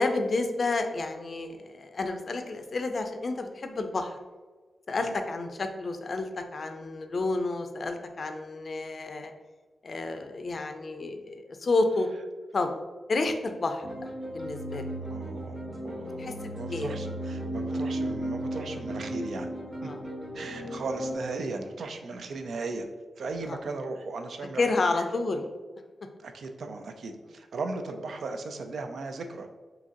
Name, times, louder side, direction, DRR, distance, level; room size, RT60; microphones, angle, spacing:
voice 1, 0.0-4.2 4.9-9.3 9.8-12.1 12.5-12.7 13.1-14.1 14.3-14.9 16.2-16.9 19.8-20.0 23.4-23.6 24.6-25.4, left 3 dB, 50° left, 6 dB, 0.4 m, -30 dB
sound 1, 13.8-21.1, right 1 dB, 25° right, 1.0 m, -35 dB
voice 2, 15.1-15.6 15.8-19.5 19.8-19.9 20.3-22.9 23.2-24.6 24.9-25.1 26.2-29.5, right 3 dB, 75° right, 6 dB, 0.3 m, -37 dB
2.8 x 2.6 x 3.6 m, 1.3 s
wide cardioid pair, 90°, 0 cm